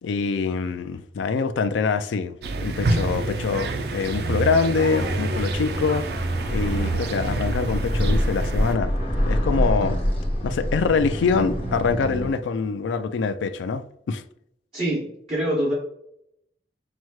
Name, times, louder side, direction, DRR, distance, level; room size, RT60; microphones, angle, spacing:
voice 1, 0.0-6.1 6.5-8.9 9.3-10.0 10.4-14.2, left 5 dB, 90° left, 0.3 m, -24 dB
sound 1, 2.4-8.8, right 2 dB, 60° right, 0.4 m, -27 dB
sound 2, 5.0-12.3, equal, 30° left, 0.9 m, -26 dB
voice 2, 14.7-15.7, right 1 dB, 30° right, 1.6 m, -25 dB
5.9 x 2.1 x 3.0 m
head